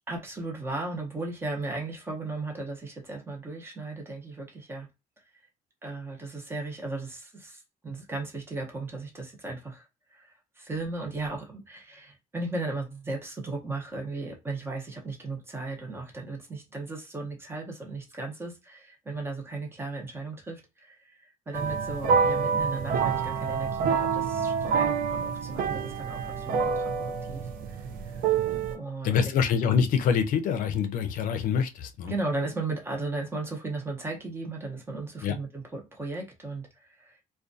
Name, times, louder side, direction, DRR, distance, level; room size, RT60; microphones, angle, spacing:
voice 1, 0.1-4.9 5.3-5.5 5.8-28.2 28.7-29.2 32.1-37.2, right 3 dB, 15° right, 0.7 m, -36 dB
sound 1, 21.5-28.8, right 6 dB, 80° right, 0.4 m, -27 dB
voice 2, 29.0-32.1 35.2-35.4, left 7 dB, 70° left, 0.5 m, -25 dB
2.4 x 2.2 x 2.5 m
cardioid pair, 160°, 15 cm